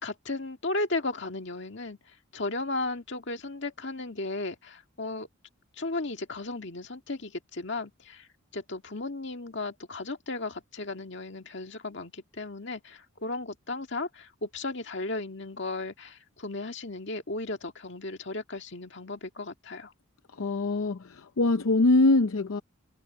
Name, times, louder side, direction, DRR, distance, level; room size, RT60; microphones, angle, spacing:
voice 1, 0.0-2.0 2.3-5.3 5.8-8.3 8.5-19.9, left 2 dB, 60° left, 2.0 m, -35 dB
voice 2, 20.3-22.6, left 2 dB, 85° left, 0.6 m, -23 dB
head